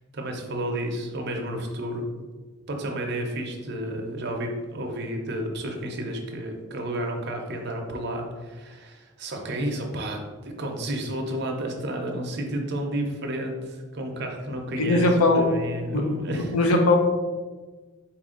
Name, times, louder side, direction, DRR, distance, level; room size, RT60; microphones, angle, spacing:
voice 1, 0.1-2.1 2.7-15.1 15.3-16.5, right 1 dB, 50° right, 2 dB, 0.6 m, -31 dB
voice 2, 14.8-15.5 15.9-17.0, left 2 dB, 80° left, 3 dB, 0.6 m, -21 dB
4.3 x 2.5 x 3.7 m, 1.3 s
head